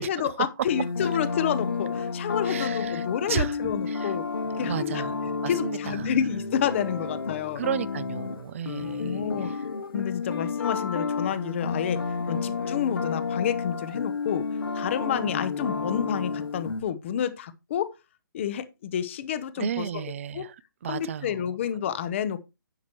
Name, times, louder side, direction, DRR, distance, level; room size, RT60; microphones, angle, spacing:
voice 1, 0.0-4.3 4.6-5.0 5.5-7.6 8.8-9.5 9.9-12.0 12.3-14.4 14.7-17.9 18.3-20.0 20.3-20.4 20.9-22.4, left 9 dB, 35° left, 0.8 m, -29 dB
sound 1, 0.7-16.8, left 4 dB, 80° left, 1.5 m, -31 dB
voice 2, 2.4-4.1 4.5-6.3 7.6-9.6 19.6-20.6 20.8-21.5, right 9 dB, 35° right, 0.5 m, -34 dB
10.5 x 7.2 x 3.0 m
hypercardioid pair, 155°, 12 cm